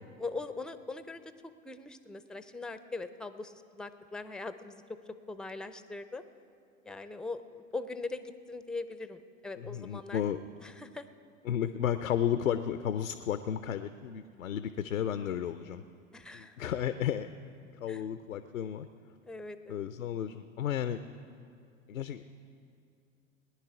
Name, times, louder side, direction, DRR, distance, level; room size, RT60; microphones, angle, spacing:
voice 1, 0.2-1.2 1.6-5.0 5.3-6.2 6.8-10.2 10.6-11.1 16.1-16.6 17.9-18.0 19.3-19.9, left 3 dB, ahead, 11 dB, 0.4 m, -41 dB
voice 2, 9.6-10.4 11.4-15.8 16.3-17.3 17.8-18.9 19.7-21.0 21.9-22.2, left 9 dB, 85° left, 11 dB, 0.5 m, -33 dB
19.5 x 10.0 x 4.8 m, 2.4 s
figure-of-eight pair, 80°, 39 cm